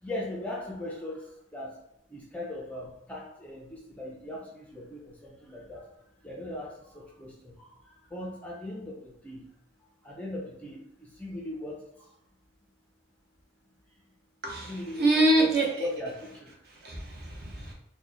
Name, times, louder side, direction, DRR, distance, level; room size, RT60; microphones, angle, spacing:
voice 1, 0.0-1.8 2.1-5.9 6.2-9.5 10.0-12.1 14.5-15.5 15.8-16.7 17.3-17.4, left 1 dB, 5° left, -3 dB, 0.4 m, -39 dB
voice 2, 15.0-15.7 16.8-17.7, right 1 dB, 50° right, -1 dB, 0.7 m, -24 dB
3.0 x 2.1 x 3.7 m, 0.76 s
head